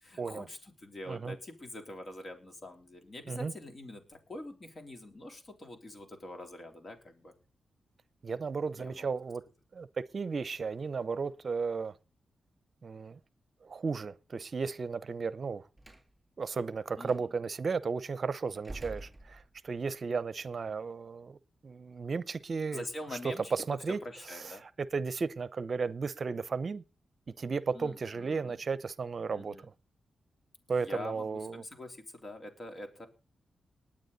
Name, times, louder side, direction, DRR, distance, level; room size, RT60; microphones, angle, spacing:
voice 1, 0.0-7.3 8.8-9.1 17.0-17.3 22.7-23.5 24.0-24.6 27.7-28.6 29.3-29.7 30.7-33.1, left 1 dB, 45° left, 3.5 m, -45 dB
voice 2, 8.2-9.4 9.7-12.0 12.8-13.2 13.6-15.7 16.4-21.4 21.6-22.8 23.2-24.0 24.4-26.8 27.4-29.7 30.7-31.6, right 5 dB, 50° right, 0.7 m, -34 dB
Slam, 15.8-16.1 17.0-17.2 18.6-19.8, right 2 dB, 20° right, 3.2 m, -46 dB
19.5 x 8.8 x 4.0 m
cardioid pair, 70°, 0 cm